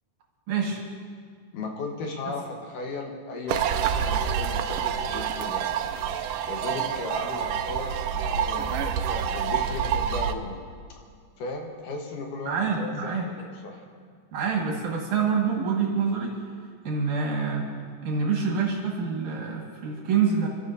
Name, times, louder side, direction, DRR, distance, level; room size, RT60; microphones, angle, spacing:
voice 1, 0.5-0.8 2.3-2.4 12.4-13.3 14.3-16.3 16.8-17.7 18.0-20.5, right 5 dB, 65° right, -2 dB, 3.1 m, -26 dB
voice 2, 1.5-5.8 6.4-9.0 9.3-10.6 11.4-13.8, left 3 dB, 75° left, 1 dB, 2.7 m, -36 dB
sound 1, 3.5-10.3, right 8 dB, 90° right, 2.2 m, -27 dB
28.0 x 13.0 x 2.7 m, 2.1 s
omnidirectional pair, 3.8 m